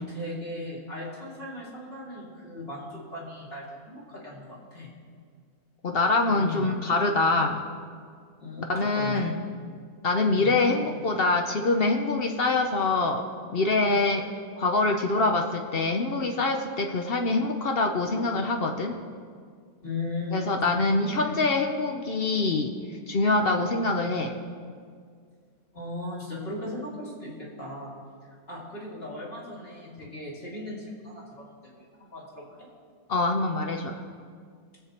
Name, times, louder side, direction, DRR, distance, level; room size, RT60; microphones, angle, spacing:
voice 1, 0.0-5.0 6.3-6.7 8.4-9.4 10.3-10.5 19.8-21.3 25.7-27.9 28.5-32.7, left 2 dB, 40° left, -5 dB, 2.6 m, -37 dB
voice 2, 5.8-7.7 8.7-9.3 10.0-14.3 14.6-19.0 20.3-22.8 23.1-24.4 33.1-34.0, left 3 dB, 55° left, 4 dB, 0.6 m, -25 dB
22.0 x 7.8 x 2.9 m, 2.1 s
omnidirectional pair, 1.6 m